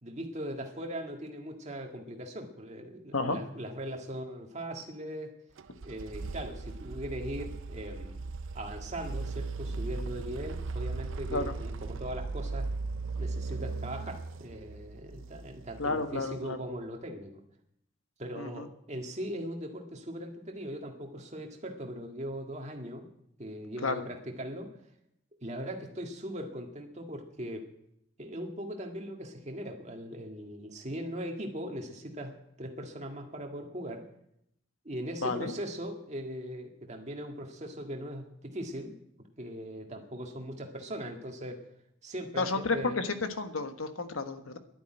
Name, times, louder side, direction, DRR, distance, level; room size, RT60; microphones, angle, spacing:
voice 1, 0.0-5.3 5.8-8.2 8.5-12.7 13.2-17.4 18.2-23.1 23.4-24.7 25.4-27.6 28.2-34.1 34.9-39.0 39.4-41.7 42.0-43.0, equal, 35° right, 2 dB, 1.8 m, -39 dB
sound 1, 5.6-16.4, right 3 dB, 70° right, 0.6 m, -38 dB
voice 2, 15.8-16.6 18.4-18.7 23.8-24.0 35.2-35.5 42.4-44.6, left 3 dB, 85° left, 8 dB, 1.4 m, -31 dB
11.0 x 10.5 x 9.0 m, 0.76 s
head